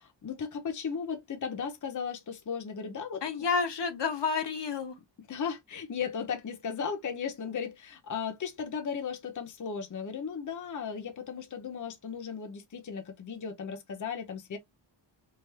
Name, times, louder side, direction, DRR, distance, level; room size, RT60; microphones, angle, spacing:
voice 1, 0.0-3.2 5.3-14.6, left 6 dB, 40° left, 0.7 m, -36 dB
voice 2, 3.2-4.9, left 5 dB, 65° left, 1.0 m, -30 dB
3.4 x 2.4 x 3.3 m
wide cardioid pair, 125°, 46 cm